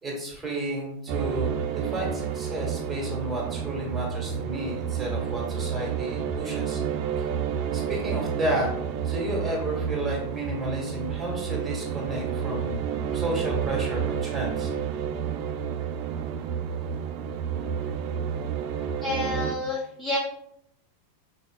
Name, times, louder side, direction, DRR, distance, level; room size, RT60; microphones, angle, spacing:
voice 1, 0.0-6.8 7.2-7.3 7.7-8.7 9.0-12.8 13.1-14.7, right 1 dB, 10° right, -2 dB, 1.8 m, -32 dB
sound 1, 1.1-19.5, right 7 dB, 40° right, 0.4 m, -30 dB
voice 2, 19.0-20.2, left 2 dB, 10° left, -2 dB, 0.6 m, -29 dB
5.2 x 4.1 x 2.2 m, 0.73 s
figure-of-eight pair, 90°, 0 cm